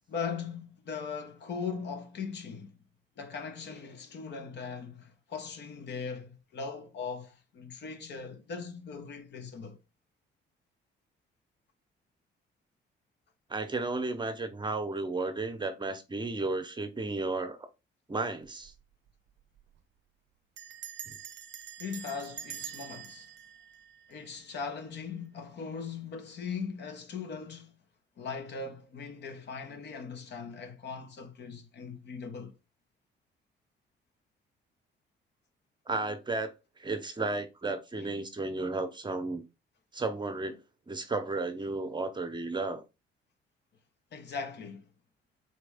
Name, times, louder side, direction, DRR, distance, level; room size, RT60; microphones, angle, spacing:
voice 1, 0.1-2.8 3.2-9.8 21.8-23.3 24.1-27.8 28.2-32.6 38.0-38.1 44.1-44.8, left 5 dB, 60° left, 1.0 m, -39 dB
voice 2, 13.5-17.7 18.1-18.7 21.1-21.2 35.9-39.4 39.9-40.6 40.9-42.8, right 3 dB, 25° right, 0.8 m, -33 dB
Bell, 18.4-18.8 19.1-19.2 19.4-19.8 20.6-24.7, right 9 dB, 65° right, 0.5 m, -45 dB
4.2 x 3.1 x 3.5 m
cardioid pair, 90°, 20 cm